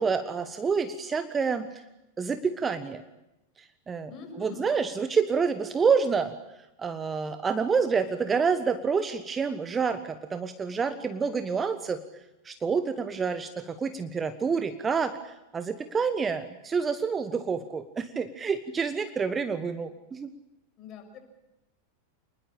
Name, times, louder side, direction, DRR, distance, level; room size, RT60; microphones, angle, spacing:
voice 1, 0.0-1.8 2.2-3.0 3.9-4.1 4.4-6.3 6.8-12.0 12.4-20.3, right 5 dB, 20° right, 10 dB, 1.3 m, -28 dB
voice 2, 4.1-4.7 20.8-21.2, left 5 dB, 35° left, 5 dB, 6.6 m, -43 dB
27.5 x 21.0 x 8.9 m, 0.93 s
figure-of-eight pair, 90°, 0 cm